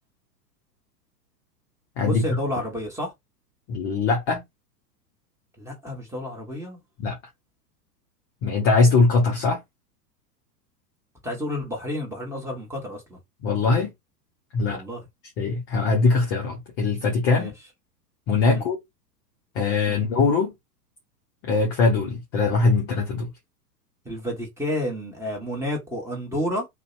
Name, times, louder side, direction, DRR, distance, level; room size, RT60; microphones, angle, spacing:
voice 1, 2.0-3.1 5.6-6.8 11.2-13.2 14.7-15.0 17.3-17.5 18.5-18.6 19.9-20.0 24.0-26.7, left 1 dB, 5° right, 1.0 m, -30 dB
voice 2, 3.7-4.4 7.0-7.2 8.4-9.6 13.4-13.9 14.5-14.8 15.4-17.5 18.3-18.8 19.5-20.5 21.4-23.3, left 4 dB, 25° left, 0.5 m, -21 dB
2.6 x 2.1 x 2.5 m
hypercardioid pair, 105°, 50 cm